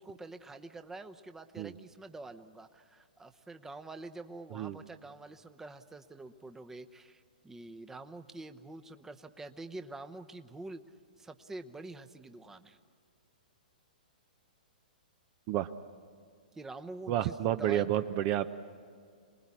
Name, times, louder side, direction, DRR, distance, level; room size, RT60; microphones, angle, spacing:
voice 1, 0.0-10.8 11.2-12.8 16.5-17.9, right 2 dB, 10° right, 8 dB, 0.9 m, -46 dB
voice 2, 17.1-18.5, right 12 dB, 40° right, 11 dB, 0.7 m, -30 dB
27.0 x 20.0 x 8.5 m, 2.2 s
hypercardioid pair, 120°, 5 cm